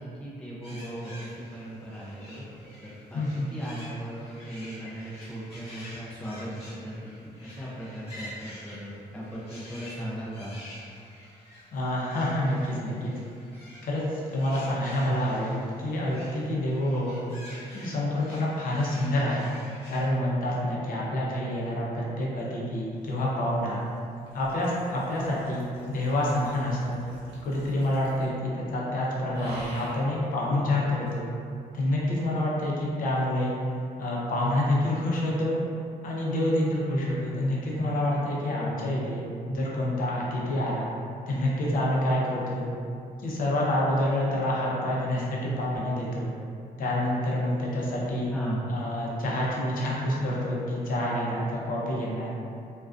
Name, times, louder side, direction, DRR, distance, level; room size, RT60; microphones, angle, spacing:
voice 1, 0.0-10.5 48.3-48.6, right 1 dB, 5° left, -7 dB, 0.4 m, -37 dB
sound 1, 0.6-20.2, left 1 dB, 35° left, 0.8 m, -48 dB
voice 2, 3.1-3.5 11.7-13.1 13.8-17.2 17.7-19.4 19.9-23.8 24.3-27.0 27.4-31.2 31.7-33.5 34.0-35.6 36.0-40.9 41.3-42.7 43.2-46.3 46.8-48.3 48.7-52.3, left 1 dB, 60° left, -5 dB, 0.5 m, -27 dB
sound 2, 22.7-28.5 28.7-29.0 29.3-30.1 31.1-31.2, right 1 dB, 90° right, 0.8 m, -47 dB
2.4 x 2.2 x 2.4 m, 2.4 s
cardioid pair, 145°, 16 cm